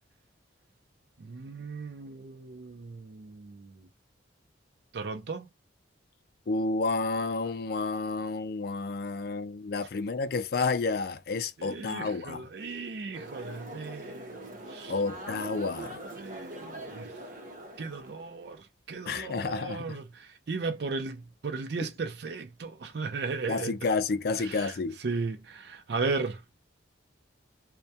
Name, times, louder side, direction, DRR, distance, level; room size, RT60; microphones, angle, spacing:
voice 1, 1.2-3.8 4.9-5.5 11.6-14.9 16.2-17.1 17.8-23.8 24.4-24.7 25.0-26.4, right 4 dB, 60° right, 0.4 m, -36 dB
voice 2, 6.5-12.5 14.9-16.0 19.1-20.0 21.8-21.9 23.5-25.0, left 3 dB, 55° left, 0.3 m, -30 dB
sound 1, 13.1-18.6, right 1 dB, 45° right, 0.9 m, -42 dB
2.2 x 2.1 x 2.7 m
head